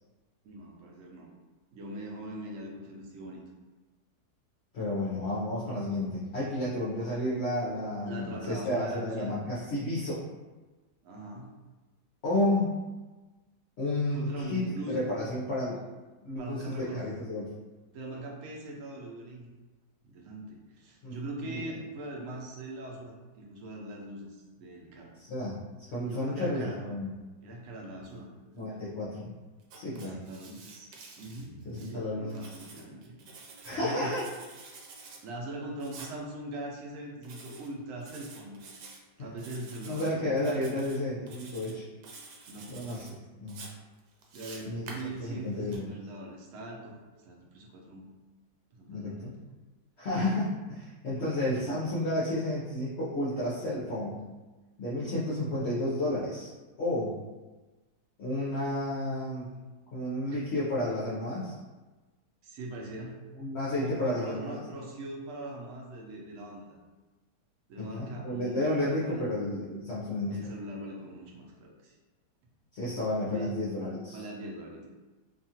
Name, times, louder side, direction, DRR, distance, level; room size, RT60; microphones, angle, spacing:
voice 1, 0.4-1.3 1.7-3.4 8.0-9.4 11.0-11.5 14.1-15.0 16.4-17.0 17.9-19.5 20.0-24.3 24.6-25.2 26.0-26.9 27.4-28.3 29.9-30.9 31.2-33.1 33.5-34.1 35.2-38.6 39.2-40.9 42.5-42.8 44.3-48.1 48.7-49.3 60.3-60.4 62.4-63.2 63.7-66.8 67.7-69.2 70.3-71.9 73.3-73.5 74.1-74.9, right 2 dB, 65° right, -1 dB, 0.9 m, -41 dB
voice 2, 4.7-10.2 12.2-12.7 13.8-15.8 16.2-17.5 21.0-21.2 21.4-21.8 25.2-27.1 28.5-29.3 29.7-30.2 31.6-32.5 33.6-34.2 39.2-39.3 39.9-41.8 42.7-43.6 44.7-45.9 48.9-49.3 50.0-54.2 54.8-56.5 56.8-57.1 58.2-59.5 59.9-61.6 63.3-64.6 67.8-70.4 72.7-74.2, left 1 dB, 55° left, -8 dB, 0.8 m, -32 dB
Writing, 29.6-31.9 32.3-33.8 34.1-35.2 35.8-36.1 37.2-37.7 38.0-39.0 39.4-40.1 40.4-41.0 41.3-41.7 42.0-43.1 43.5-45.8, right 4 dB, 90° right, 1.2 m, -49 dB
2.8 x 2.4 x 2.7 m, 1.2 s
omnidirectional pair, 1.7 m